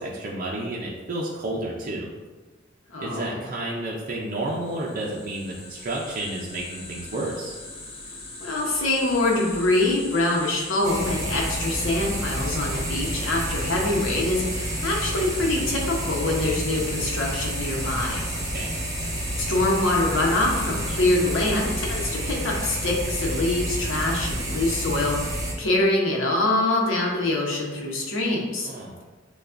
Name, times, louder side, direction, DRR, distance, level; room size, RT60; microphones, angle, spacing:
voice 1, 0.0-2.1 3.0-7.5 18.5-18.8 28.6-29.0, right 1 dB, 45° right, -3 dB, 0.5 m, -31 dB
voice 2, 2.9-3.4 8.4-18.2 19.4-28.7, left 2 dB, 90° left, -1 dB, 0.9 m, -24 dB
sound 1, 4.4-22.1, left 2 dB, 30° left, 0.7 m, -40 dB
sound 2, 10.8-25.5, right 1 dB, 20° right, 0.8 m, -30 dB
6.8 x 2.3 x 2.5 m, 1.3 s
head